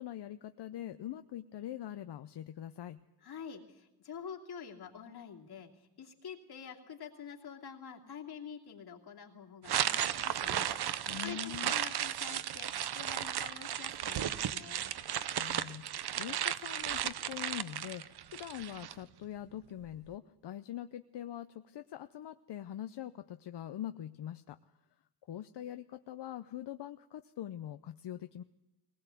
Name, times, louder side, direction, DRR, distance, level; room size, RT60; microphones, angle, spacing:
voice 1, 0.0-3.0 11.1-11.7 15.4-24.6 25.3-28.4, left 11 dB, 90° left, 10 dB, 0.7 m, -43 dB
voice 2, 3.2-14.9, left 7 dB, 70° left, 0 dB, 2.8 m, -48 dB
sound 1, 9.6-18.9, right 10 dB, 70° right, 0.8 m, -35 dB
20.0 x 19.0 x 8.4 m, 0.92 s
wide cardioid pair, 160°, 40 cm